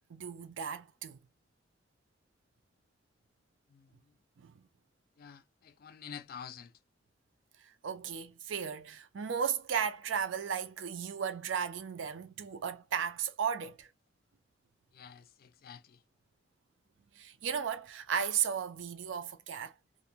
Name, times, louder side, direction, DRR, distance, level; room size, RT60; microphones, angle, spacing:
voice 1, 0.1-1.2 4.4-4.5 7.8-13.9 17.2-19.7, right 7 dB, 80° right, 0.4 m, -35 dB
voice 2, 3.7-4.1 5.2-6.7 14.9-16.0, left 7 dB, 50° left, 0.4 m, -49 dB
2.5 x 2.1 x 2.6 m
head